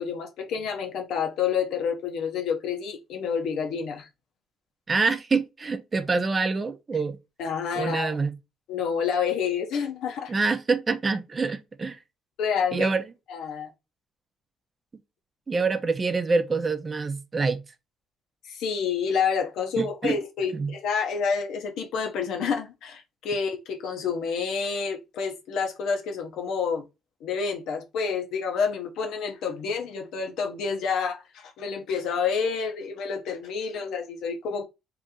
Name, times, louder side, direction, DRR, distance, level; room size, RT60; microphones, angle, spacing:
voice 1, 0.0-4.1 7.4-8.2 8.7-10.3 12.4-12.9 13.3-13.7 18.5-26.8 27.2-34.7, left 6 dB, 75° left, 0.7 m, -28 dB
voice 2, 4.9-7.2 7.8-8.3 10.3-12.0 12.7-13.0 15.5-17.6 19.8-20.1 20.5-20.7, right 4 dB, 35° right, 0.5 m, -26 dB
2.9 x 2.6 x 3.6 m
supercardioid pair, 65°, 0 cm